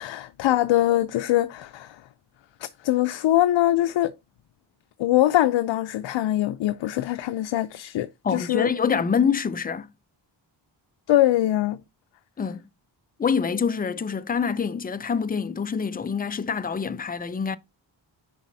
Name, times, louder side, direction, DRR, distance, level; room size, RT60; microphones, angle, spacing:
voice 1, 0.0-2.0 2.6-4.1 5.0-8.7 11.1-11.8, left 14 dB, 80° left, 0.5 m, -23 dB
voice 2, 8.2-9.9 12.4-12.7 13.2-17.6, left 6 dB, 20° left, 0.4 m, -25 dB
10.0 x 4.1 x 2.6 m
wide cardioid pair, 135°, 44 cm